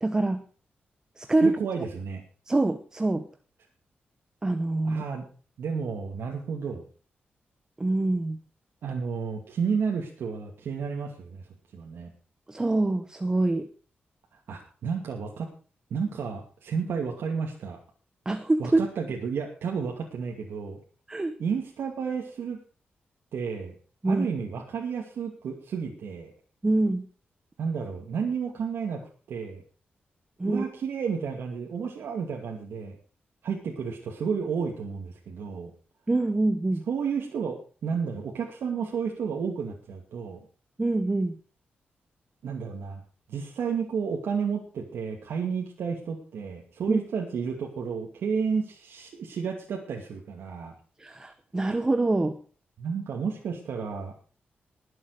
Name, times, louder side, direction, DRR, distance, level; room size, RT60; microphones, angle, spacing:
voice 1, 0.0-0.4 1.2-1.6 2.5-3.2 4.4-5.0 7.8-8.4 12.5-13.7 18.3-18.8 21.1-21.3 24.0-24.3 26.6-27.1 30.4-30.6 36.1-36.8 40.8-41.4 46.9-47.0 51.0-52.4, right 2 dB, 15° right, 10 dB, 0.9 m, -25 dB
voice 2, 1.4-2.2 4.8-5.3 5.6-6.8 8.8-11.5 11.7-12.1 14.5-15.5 15.9-17.8 18.6-20.8 21.4-22.6 23.3-23.8 24.0-26.3 27.6-29.6 30.4-33.0 33.4-35.7 36.9-40.4 42.4-43.0 43.3-50.7 52.8-54.1, right 6 dB, 80° right, 0 dB, 2.4 m, -31 dB
20.5 x 7.9 x 4.9 m, 0.39 s
wide cardioid pair, 155°, 4 cm